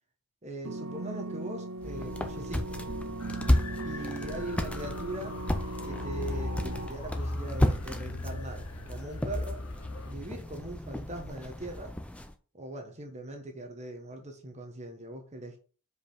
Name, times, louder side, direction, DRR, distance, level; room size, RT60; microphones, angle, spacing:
voice 1, 0.4-2.8 3.8-5.4 5.8-9.6 10.1-11.9 12.5-15.6, right 1 dB, 30° right, 1.2 m, -41 dB
sound 1, 0.6-6.9, right 2 dB, 60° right, 0.7 m, -39 dB
sound 2, 1.8-12.3, left 1 dB, 5° left, 0.6 m, -33 dB
sound 3, 3.2-10.1, left 2 dB, 75° left, 1.1 m, -39 dB
5.2 x 4.9 x 5.6 m
head